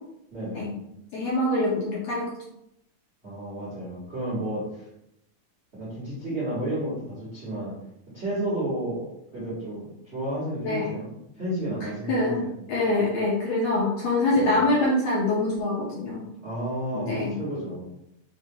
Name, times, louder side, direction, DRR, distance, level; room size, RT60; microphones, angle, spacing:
voice 1, 0.3-0.7 3.2-4.8 5.7-7.7 8.1-11.1 11.3-12.5 14.3-14.6 16.4-17.1 17.4-17.8, right 1 dB, 55° right, -9 dB, 0.7 m, -31 dB
voice 2, 1.1-2.3 10.6-11.0 11.8-16.3 16.9-17.4, left 2 dB, 80° left, -4 dB, 1.5 m, -25 dB
5.1 x 2.2 x 2.7 m, 0.81 s
omnidirectional pair, 3.5 m